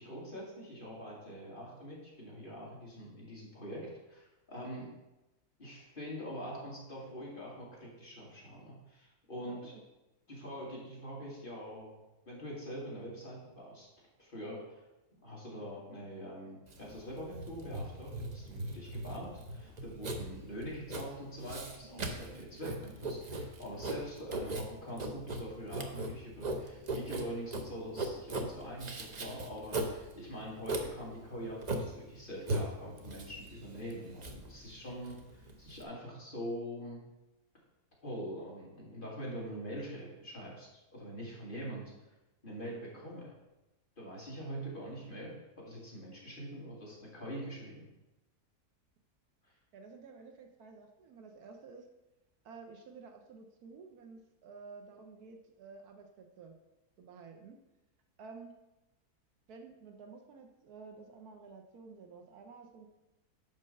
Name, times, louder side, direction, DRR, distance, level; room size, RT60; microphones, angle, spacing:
voice 1, 0.0-4.9 5.6-9.7 10.3-12.0 12.3-13.9 14.2-14.8 15.2-37.0 38.0-41.9 42.4-43.3 44.0-47.9, equal, 30° left, -5 dB, 2.1 m, -44 dB
voice 2, 9.4-9.8 49.7-51.9 52.4-56.5 57.0-57.6 58.2-58.5 59.5-62.9, right 4 dB, 70° right, 4 dB, 1.2 m, -52 dB
Writing, 16.7-35.8, right 2 dB, 45° right, 0.5 m, -39 dB
5.5 x 5.1 x 6.4 m, 1.0 s
omnidirectional pair, 1.7 m